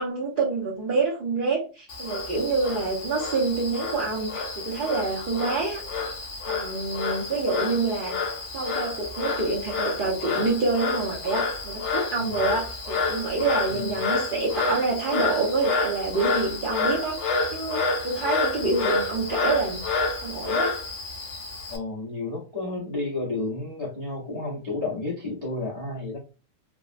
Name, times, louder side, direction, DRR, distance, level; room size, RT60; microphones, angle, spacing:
voice 1, 0.0-5.8 6.4-8.1 8.5-19.8 20.2-20.7, right 3 dB, 70° right, -5 dB, 0.4 m, -27 dB
Frog, 1.9-21.8, left 4 dB, 60° left, 0.8 m, -29 dB
voice 2, 12.1-12.5 13.7-14.0 21.7-26.2, left 2 dB, 85° left, -4 dB, 0.3 m, -31 dB
3.4 x 2.0 x 2.4 m, 0.33 s
omnidirectional pair, 1.7 m